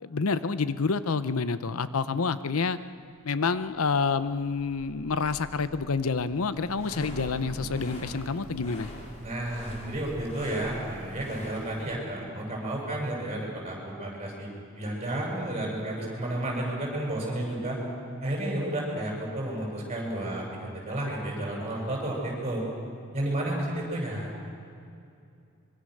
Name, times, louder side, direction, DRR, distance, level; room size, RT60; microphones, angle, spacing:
voice 1, 0.0-2.8 3.2-8.9, left 4 dB, 80° left, 13 dB, 0.7 m, -28 dB
sound 1, 3.7-11.8, right 1 dB, 70° right, 1.8 m, -45 dB
sound 2, 6.6-11.9, equal, 30° left, 3.4 m, -44 dB
voice 2, 9.2-17.8 18.2-22.6 23.1-24.4, right 1 dB, 30° right, -2 dB, 7.2 m, -32 dB
24.5 x 23.5 x 6.6 m, 2.5 s
head